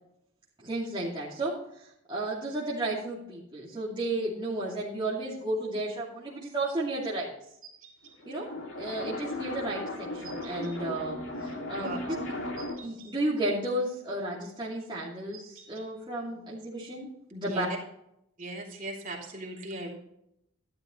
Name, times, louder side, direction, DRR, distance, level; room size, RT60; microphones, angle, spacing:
voice 1, 0.6-7.3 8.3-8.5 8.8-12.0 12.8-17.7, right 1 dB, 20° right, -8 dB, 2.5 m, -33 dB
sound 1, 7.6-8.2 10.2-10.8 12.6-13.1 15.3-15.9, right 6 dB, 70° right, 2.3 m, -50 dB
sound 2, 8.1-12.9, left 2 dB, 60° left, 2.5 m, -37 dB
voice 2, 11.8-12.2 17.4-17.6 18.4-19.9, right 1 dB, 40° right, -2 dB, 3.1 m, -38 dB
12.5 x 11.5 x 3.1 m, 0.78 s
head